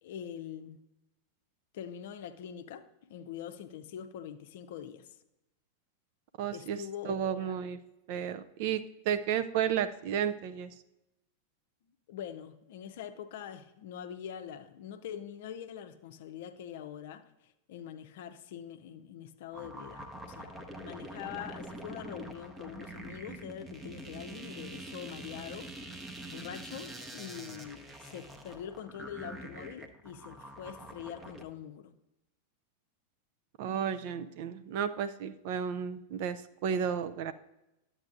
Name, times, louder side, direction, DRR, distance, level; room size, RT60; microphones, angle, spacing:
voice 1, 0.0-0.8 1.7-5.1 6.5-7.6 12.1-20.5 20.8-25.7 26.3-31.9, left 9 dB, 55° left, 9 dB, 0.6 m, -44 dB
voice 2, 6.4-7.8 8.1-10.7 33.6-37.3, right 8 dB, 50° right, 11 dB, 0.5 m, -33 dB
sound 1, 19.5-31.4, right 1 dB, 15° right, 0.8 m, -45 dB
11.5 x 7.9 x 2.5 m, 0.92 s
figure-of-eight pair, 90°, 0 cm